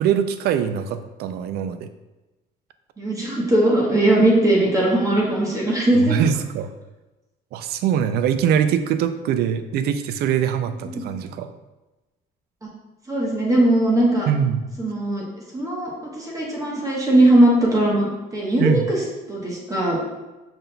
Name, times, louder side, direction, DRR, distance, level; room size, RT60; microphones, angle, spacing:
voice 1, 0.0-1.9 6.0-6.7 7.5-11.5 14.3-14.6 18.6-18.9, right 8 dB, 70° right, 11 dB, 0.4 m, -22 dB
voice 2, 3.0-6.2 10.8-11.0 13.1-14.3 14.8-15.2 15.5-19.0 19.3-20.0, right 1 dB, 20° right, -3 dB, 1.0 m, -19 dB
5.5 x 3.7 x 2.2 m, 1.1 s
cardioid pair, 110°, 17 cm